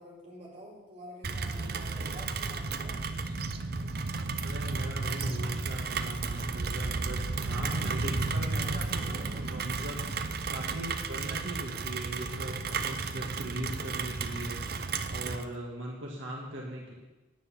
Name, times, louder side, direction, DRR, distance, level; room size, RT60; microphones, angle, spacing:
voice 1, 0.0-3.1, equal, 35° right, -4 dB, 4.2 m, -48 dB
Rain, 1.2-15.4, right 4 dB, 50° right, 0.7 m, -33 dB
voice 2, 4.4-10.0 10.5-16.9, right 1 dB, 75° right, -2 dB, 1.9 m, -40 dB
10.5 x 9.3 x 7.1 m, 1.1 s
head